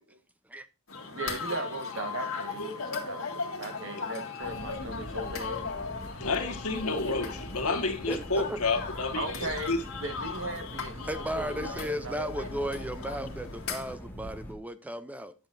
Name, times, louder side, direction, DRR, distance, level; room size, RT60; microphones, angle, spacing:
sound 1, 0.9-14.0, left 4 dB, 70° left, 1.8 m, -38 dB
voice 1, 1.1-5.7 6.2-6.3 9.1-11.1 11.3-11.8 12.0-12.5, right 2 dB, 65° right, 1.4 m, -38 dB
sound 2, 4.4-14.5, equal, 10° left, 1.4 m, -43 dB
voice 2, 6.2-9.8, left 3 dB, 90° left, 1.4 m, -30 dB
voice 3, 8.1-8.6 11.0-15.3, equal, 5° right, 0.4 m, -35 dB
10.0 x 6.9 x 2.5 m
head